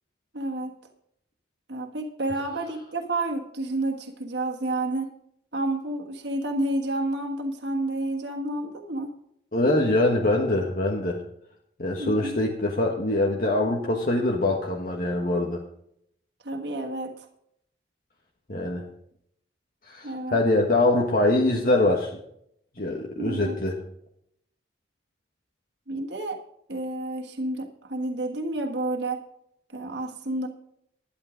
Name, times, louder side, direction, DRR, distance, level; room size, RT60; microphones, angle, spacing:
voice 1, 0.3-0.8 1.7-5.1 5.5-9.1 12.0-12.4 16.4-17.3 20.0-20.4 23.2-23.6 25.9-26.4 26.7-29.2 29.7-30.5, right 2 dB, 75° right, 3 dB, 1.5 m, -30 dB
voice 2, 9.5-11.2 11.8-15.6 18.5-18.8 19.8-22.2 22.8-23.8, left 2 dB, 50° left, 0 dB, 1.5 m, -23 dB
12.0 x 10.5 x 5.1 m, 0.72 s
head